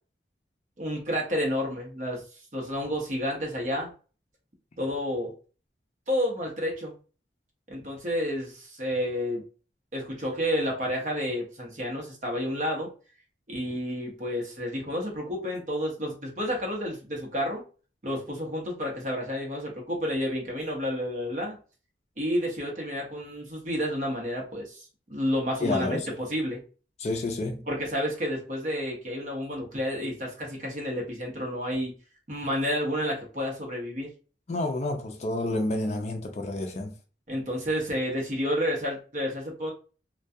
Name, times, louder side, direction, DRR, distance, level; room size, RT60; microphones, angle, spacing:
voice 1, 0.8-2.2 2.5-3.9 4.8-5.3 6.1-6.9 7.7-9.4 9.9-12.9 13.5-17.6 18.0-21.6 22.2-24.8 25.1-26.6 27.7-31.9 32.3-34.1 37.3-39.7, equal, 45° right, 0.8 m, -30 dB
voice 2, 25.6-26.1 27.0-27.7 34.5-36.9, left 2 dB, 40° left, 0.4 m, -29 dB
2.3 x 2.2 x 2.6 m
head